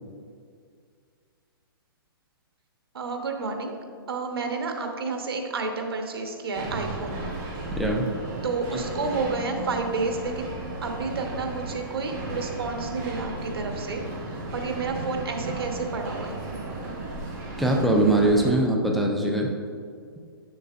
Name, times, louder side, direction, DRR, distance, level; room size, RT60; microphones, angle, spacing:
voice 1, 2.9-3.7 4.1-7.2 8.4-10.5 10.8-14.0 14.3-16.4, right 4 dB, 85° right, 4 dB, 1.0 m, -30 dB
sound 1, 6.5-18.5, right 2 dB, 25° right, 1.3 m, -35 dB
voice 2, 7.8-8.1 8.7-8.8 17.6-19.5, right 1 dB, ahead, -1 dB, 0.3 m, -22 dB
7.3 x 6.8 x 2.5 m, 2.2 s
hypercardioid pair, 155°, 12 cm